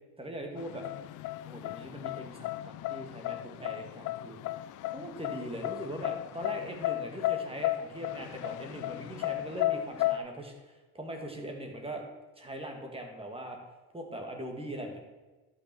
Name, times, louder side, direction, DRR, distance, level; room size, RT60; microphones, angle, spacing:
voice 1, 0.2-0.8 1.4-4.4 4.8-12.0 12.4-13.6 13.9-15.0, right 1 dB, 20° right, 2 dB, 2.2 m, -41 dB
sound 1, 0.6-10.2, left 15 dB, 80° left, 0.5 m, -34 dB
12.0 x 6.2 x 4.5 m, 1.2 s
cardioid pair, 90°, 30 cm